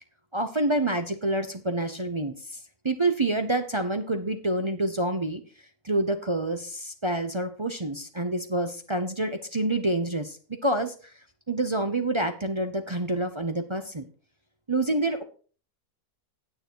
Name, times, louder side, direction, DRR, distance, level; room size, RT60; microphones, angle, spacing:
voice 1, 0.3-2.6 2.8-5.4 5.8-11.1 11.5-14.1 14.7-15.2, right 2 dB, 30° right, 7 dB, 0.5 m, -27 dB
9.3 x 9.0 x 4.5 m, 0.39 s
omnidirectional pair, 1.6 m